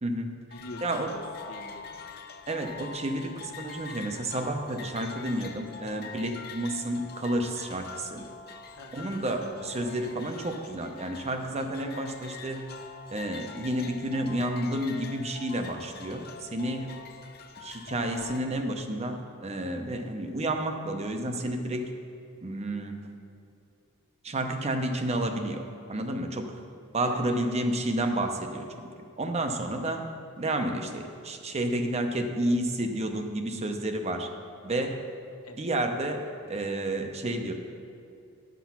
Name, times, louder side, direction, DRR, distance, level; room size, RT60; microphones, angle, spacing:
voice 1, 0.0-0.3 0.8-1.1 2.5-8.3 8.9-12.7 13.1-16.9 17.6-21.9 22.4-23.1 24.2-25.6 25.9-26.6 26.9-28.9 29.2-30.1 30.4-34.3 34.6-35.0 35.6-37.5, right 1 dB, 30° right, 5 dB, 0.7 m, -30 dB
voice 2, 0.5-1.8 8.7-9.1 16.8-17.0 27.0-27.5 35.4-35.6, left 1 dB, 85° left, 3 dB, 1.0 m, -45 dB
sound 1, 0.5-18.4, left 5 dB, 45° left, 0.7 m, -44 dB
10.5 x 6.0 x 5.9 m, 2.6 s
head